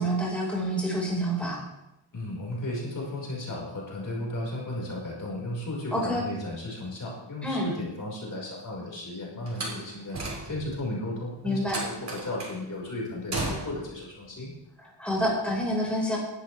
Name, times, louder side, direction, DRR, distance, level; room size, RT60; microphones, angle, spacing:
voice 1, 0.0-1.6 5.9-6.3 7.4-7.7 11.4-11.8 14.8-16.2, equal, 5° left, -3 dB, 5.1 m, -28 dB
voice 2, 2.1-14.5, left 1 dB, 45° left, -3 dB, 5.4 m, -35 dB
Slam, 9.5-10.8 11.7-12.6 13.3-13.9, right 2 dB, 40° right, 6.0 m, -34 dB
20.0 x 12.0 x 3.5 m, 0.90 s
wide cardioid pair, 95°, 42 cm